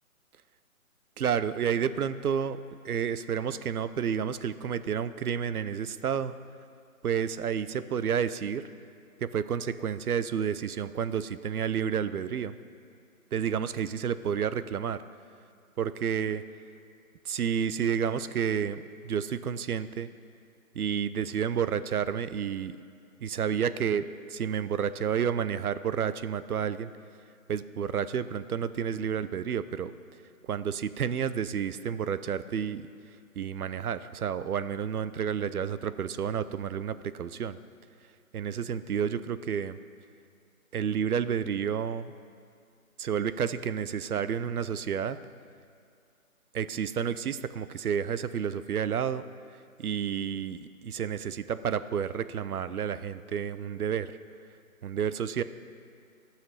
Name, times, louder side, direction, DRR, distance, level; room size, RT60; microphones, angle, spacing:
voice 1, 1.2-2.6 2.8-6.4 7.0-8.6 9.2-12.5 13.3-15.0 15.8-16.4 17.2-20.1 20.7-22.7 23.2-26.9 27.5-29.9 30.5-32.9 33.4-37.6 38.3-39.8 40.7-42.1 43.0-45.2 46.5-49.2 49.8-54.1 54.8-55.4, right 8 dB, 75° right, 14 dB, 0.6 m, -30 dB
14.5 x 5.8 x 5.7 m, 2.3 s
hypercardioid pair, 175°, 44 cm